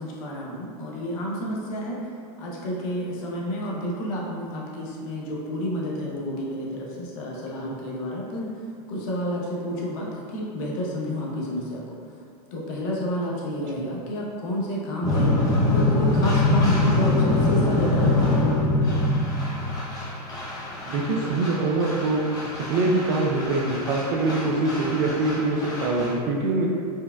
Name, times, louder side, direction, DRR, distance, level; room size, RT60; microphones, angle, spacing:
voice 1, 0.0-2.0 2.4-8.5 8.9-11.8 12.5-15.3 15.7-18.4, equal, 55° left, -3 dB, 0.8 m, -30 dB
sound 1, 15.0-26.1, left 2 dB, 20° left, 0.7 m, -24 dB
voice 2, 20.8-26.7, right 2 dB, 40° right, -1 dB, 0.4 m, -24 dB
4.5 x 2.2 x 2.2 m, 2.4 s
supercardioid pair, 140°, 20 cm